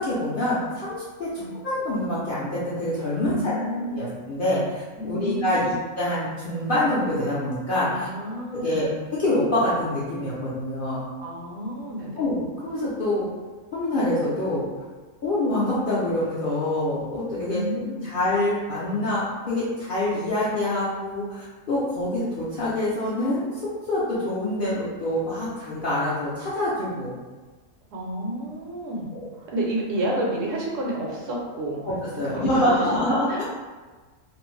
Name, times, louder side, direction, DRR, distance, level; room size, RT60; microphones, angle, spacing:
voice 1, 0.0-1.3 1.6-3.5 3.8-8.1 8.5-11.0 12.2-13.3 13.7-14.6 15.2-17.6 18.0-23.5 23.9-27.1 29.1-29.2 31.8-33.4, left 1 dB, 65° left, -9 dB, 0.5 m, -26 dB
voice 2, 3.2-4.1 5.0-5.8 7.9-8.8 11.2-12.2 17.5-18.1 27.9-29.1 29.3-31.8 32.1-33.0 33.3-33.4, right 1 dB, 70° right, -2 dB, 0.9 m, -30 dB
2.5 x 2.0 x 3.0 m, 1.3 s
omnidirectional pair, 1.4 m